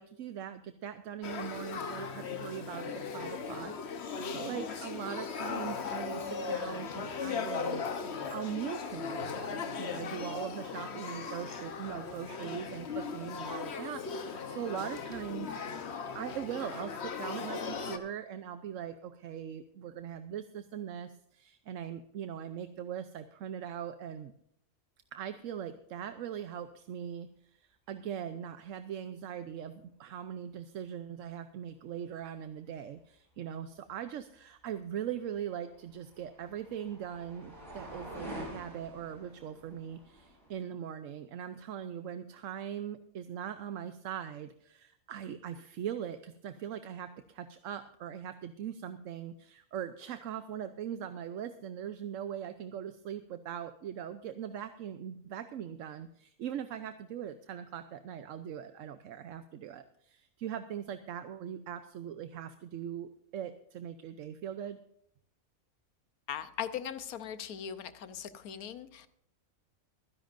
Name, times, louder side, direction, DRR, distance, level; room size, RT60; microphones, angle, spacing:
voice 1, 0.0-15.5 16.1-24.3 25.1-64.8, right 9 dB, 70° right, 10 dB, 1.0 m, -41 dB
Male speech man speaking / Child speech kid speaking / Conversation, 1.2-18.0, left 5 dB, 50° left, 1.2 m, -38 dB
sound 1, 35.3-40.6, equal, 50° right, 6.9 m, -47 dB
voice 2, 66.3-69.1, left 9 dB, 90° left, 12 dB, 1.3 m, -39 dB
24.0 x 10.5 x 2.6 m, 0.72 s
omnidirectional pair, 1.5 m